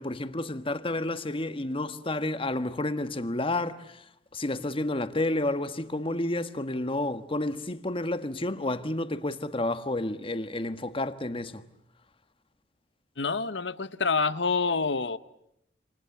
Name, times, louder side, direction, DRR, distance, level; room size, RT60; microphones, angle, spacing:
voice 1, 0.0-11.6, left 2 dB, 30° left, 1.4 m, -30 dB
voice 2, 13.2-15.2, left 4 dB, 80° left, 1.2 m, -27 dB
28.5 x 28.0 x 7.3 m
head